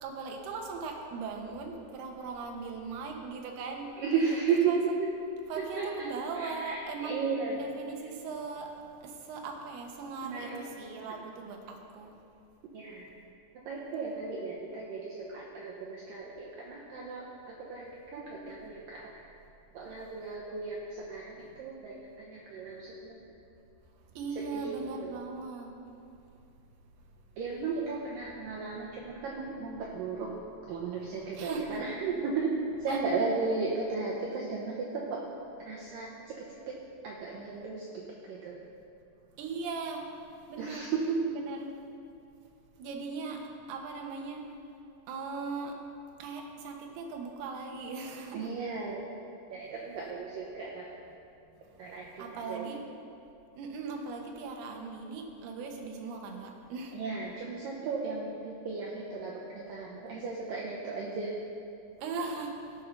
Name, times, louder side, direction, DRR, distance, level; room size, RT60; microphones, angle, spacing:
voice 1, 0.0-3.9 4.6-4.8 5.5-7.3 7.5-8.7 9.0-12.1 20.0-20.1 24.2-25.8 31.3-31.8 32.9-33.0 39.4-40.1 40.5-40.9 41.3-41.6 42.8-43.4 43.7-44.4 45.1-45.8 46.2-48.5 52.2-52.8 53.5-57.0 62.0-62.5, right 4 dB, 70° right, 2 dB, 2.7 m, -39 dB
voice 2, 4.0-5.1 5.8-6.1 6.4-7.7 10.2-10.6 11.2-11.3 12.7-13.1 13.5-19.3 19.7-23.2 24.4-25.2 27.4-30.3 30.7-32.5 32.8-35.2 35.7-36.8 37.0-37.9 38.3-38.6 40.6-41.3 48.3-49.0 49.5-50.9 51.8-52.7 56.9-61.3, right 4 dB, 90° right, -3 dB, 1.9 m, -35 dB
15.0 x 5.4 x 5.8 m, 2.6 s
omnidirectional pair, 5.2 m